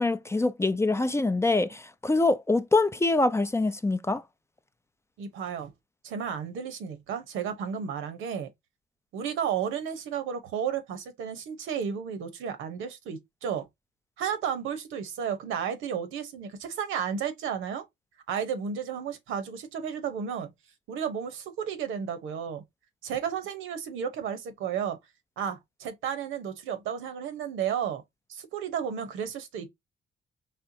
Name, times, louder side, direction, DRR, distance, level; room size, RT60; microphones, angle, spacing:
voice 1, 0.0-4.2, left 2 dB, 15° left, 0.5 m, -24 dB
voice 2, 5.2-5.7 6.0-8.5 9.1-13.7 14.2-17.8 18.3-20.5 20.9-22.6 23.0-25.0 25.4-28.0 28.3-29.7, right 7 dB, 90° right, 1.0 m, -33 dB
4.3 x 3.4 x 2.8 m
cardioid pair, 90°, 20 cm